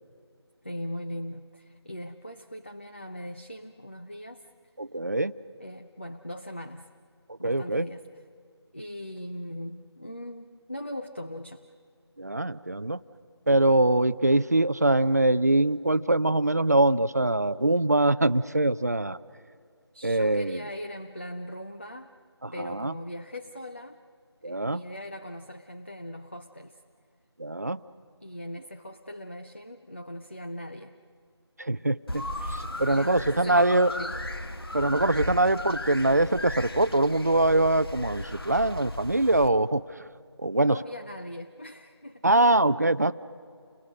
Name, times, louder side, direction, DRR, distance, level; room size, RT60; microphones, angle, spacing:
voice 1, 0.6-4.5 5.6-6.9 7.4-8.1 8.7-11.7 19.9-22.2 22.5-24.0 24.4-26.8 28.2-31.0 32.9-34.2 40.6-42.2, equal, 25° left, 6 dB, 0.5 m, -40 dB
voice 2, 4.8-5.3 7.3-7.9 12.2-13.0 13.5-19.2 20.0-20.6 22.4-22.9 24.4-24.8 27.4-27.8 31.6-33.9 34.7-40.0 40.4-40.8 42.2-43.1, right 2 dB, 40° right, 14 dB, 0.5 m, -23 dB
sound 1, 32.1-39.5, left 1 dB, 60° left, 1.7 m, -36 dB
29.5 x 22.0 x 6.3 m, 2.2 s
figure-of-eight pair, 175°, 14 cm